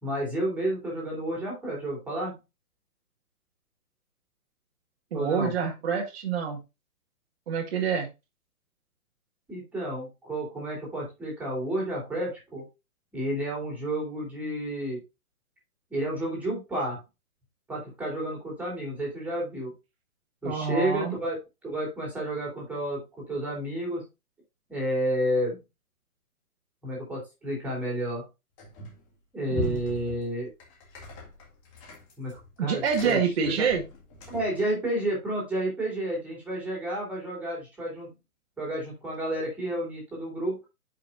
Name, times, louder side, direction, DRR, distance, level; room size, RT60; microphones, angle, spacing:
voice 1, 0.0-2.4 5.1-5.5 9.5-12.6 13.1-15.0 15.9-17.0 17.7-19.7 20.4-21.4 21.6-24.1 24.7-25.6 26.8-28.3 29.3-30.5 32.2-32.3 32.6-33.7 34.3-38.1 38.6-40.6, right 1 dB, 5° right, -4 dB, 3.6 m, -31 dB
voice 2, 5.1-6.6 7.5-8.1 20.4-21.1 29.5-29.8 32.6-33.8, right 6 dB, 40° right, 1 dB, 1.9 m, -27 dB
sound 1, 28.6-29.1 29.5-34.6, left 1 dB, 20° left, 2.1 m, -40 dB
10.5 x 5.9 x 2.6 m, 0.25 s
hypercardioid pair, 165°, 44 cm